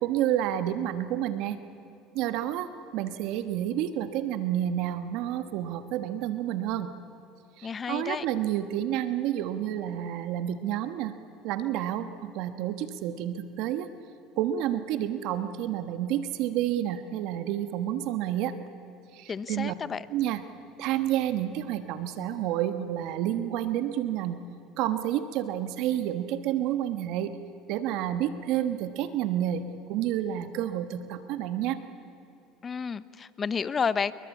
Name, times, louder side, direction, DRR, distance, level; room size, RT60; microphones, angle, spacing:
voice 1, 0.0-1.6 2.1-6.9 7.6-11.2 11.4-13.9 14.4-18.6 19.1-19.7 20.1-20.4 20.8-24.4 24.8-27.4 27.7-31.8, right 11 dB, 70° right, 10 dB, 1.3 m, -29 dB
voice 2, 7.6-8.2 19.3-20.1 32.6-34.1, left 6 dB, 30° left, 16 dB, 0.8 m, -31 dB
28.5 x 22.0 x 8.4 m, 2.9 s
supercardioid pair, 100°, 0 cm